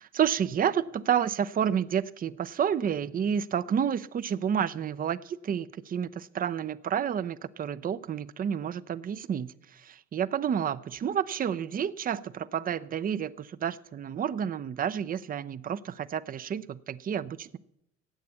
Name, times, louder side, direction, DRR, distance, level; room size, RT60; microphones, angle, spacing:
voice 1, 0.0-17.6, right 8 dB, 25° right, 0.5 m, -30 dB
11.0 x 8.4 x 8.4 m
figure-of-eight pair, 60°, 38 cm